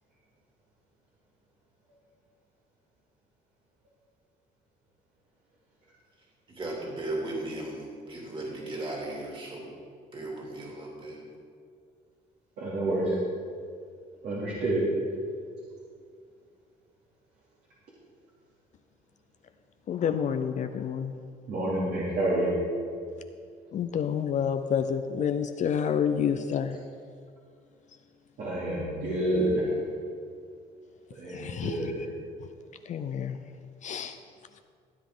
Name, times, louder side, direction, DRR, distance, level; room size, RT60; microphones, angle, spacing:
voice 1, 6.5-9.7 10.1-11.2, right 2 dB, 30° right, -3 dB, 3.0 m, -36 dB
voice 2, 12.6-13.2 14.2-14.8 21.5-22.5 28.4-29.7 31.1-32.0, right 1 dB, 70° right, -8 dB, 2.8 m, -28 dB
voice 3, 19.9-21.2 23.7-26.8 31.2-32.1 32.4-32.5 32.8-33.4 33.8-34.2, left 8 dB, 45° left, 8 dB, 0.5 m, -29 dB
16.0 x 8.4 x 3.8 m, 2.2 s
cardioid pair, 110°, 17 cm